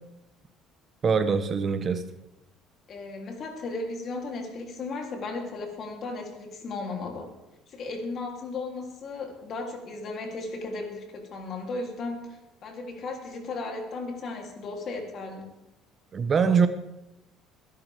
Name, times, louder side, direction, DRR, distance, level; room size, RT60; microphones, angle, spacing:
voice 1, 1.0-2.0 16.1-16.7, right 6 dB, 40° right, 1.0 m, -23 dB
voice 2, 2.9-7.3 7.7-15.5, left 3 dB, 50° left, 3.2 m, -35 dB
23.5 x 10.5 x 3.6 m
supercardioid pair, 95°, 0 cm